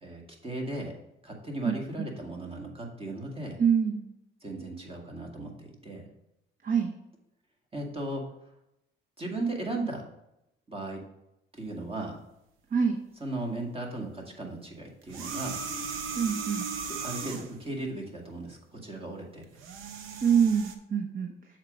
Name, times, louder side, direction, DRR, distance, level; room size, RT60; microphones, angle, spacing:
voice 1, 0.0-0.9 1.2-3.6 4.4-6.0 7.7-8.3 9.2-10.0 10.7-11.0 11.5-12.2 13.2-15.6 17.0-19.4, right 2 dB, 30° right, 1 dB, 2.0 m, -36 dB
voice 2, 1.6-2.1 3.6-4.0 6.6-6.9 12.7-13.0 16.1-16.6 20.2-21.3, right 7 dB, 45° right, 3 dB, 0.8 m, -25 dB
sound 1, 15.0-17.6 19.4-20.7, right 5 dB, 85° right, 0.8 m, -36 dB
7.2 x 4.5 x 5.1 m, 0.86 s
cardioid pair, 90°, 20 cm